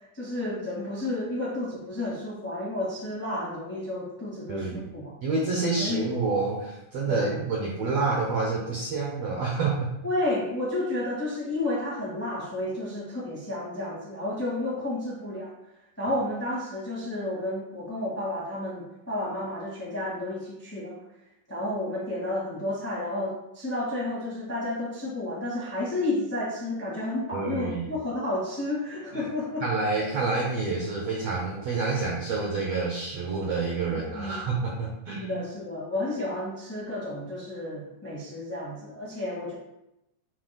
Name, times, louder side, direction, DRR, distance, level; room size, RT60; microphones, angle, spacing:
voice 1, 0.1-5.1 5.8-6.1 7.1-7.3 10.0-15.5 16.0-20.9 21.5-29.6 33.9-34.5 35.1-39.5, left 1 dB, 10° left, -5 dB, 0.7 m, -31 dB
voice 2, 4.5-4.9 5.2-9.9 27.3-28.0 29.1-29.3 29.6-35.4, right 4 dB, 75° right, -2 dB, 1.5 m, -28 dB
9.1 x 5.2 x 2.2 m, 0.88 s
omnidirectional pair, 3.9 m